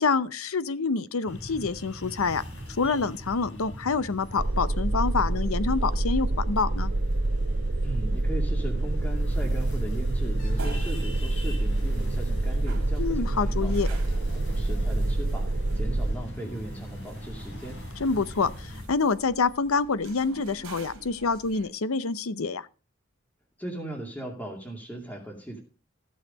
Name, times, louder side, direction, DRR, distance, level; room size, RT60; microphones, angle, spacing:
voice 1, 0.0-2.4 2.8-6.9 13.0-13.9 18.0-22.7, left 4 dB, 85° left, 0.7 m, -27 dB
sound 1, 1.3-18.9, equal, 60° left, 3.2 m, -39 dB
sound 2, 4.4-16.1, right 2 dB, 60° right, 1.1 m, -27 dB
voice 2, 7.8-14.0 14.3-15.5 15.8-17.8 23.6-25.6, right 1 dB, 5° left, 2.4 m, -38 dB
sound 3, 10.4-21.7, right 2 dB, 80° right, 2.3 m, -47 dB
14.5 x 6.5 x 5.4 m
head